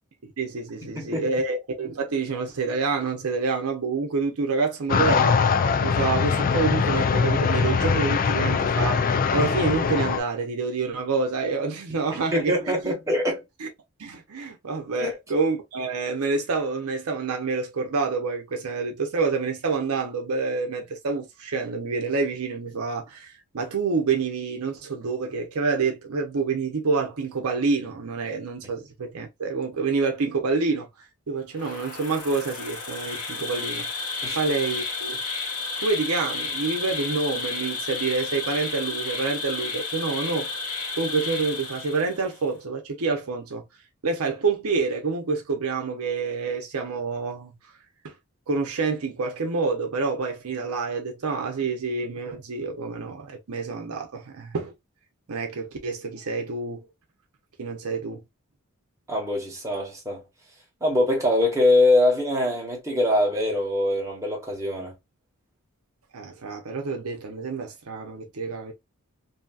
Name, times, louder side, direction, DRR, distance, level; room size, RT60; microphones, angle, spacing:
voice 1, 0.2-5.4 5.8-12.5 12.8-12.9 13.6-13.7 14.0-30.9 31.3-35.2 35.8-40.5 41.0-43.6 44.0-47.5 48.0-48.1 48.5-54.7 55.3-56.8 57.6-58.2 66.1-68.7, right 4 dB, 70° right, 0.7 m, -27 dB
voice 2, 0.8-1.3 12.1-13.4 15.0-15.1 34.2-34.4 59.1-60.2 60.8-64.9, left 1 dB, 15° right, 1.2 m, -23 dB
sound 1, 4.9-10.2, left 5 dB, 40° left, 0.3 m, -22 dB
Insect, 31.5-42.3, left 4 dB, 80° left, 1.0 m, -32 dB
2.7 x 2.7 x 2.3 m
head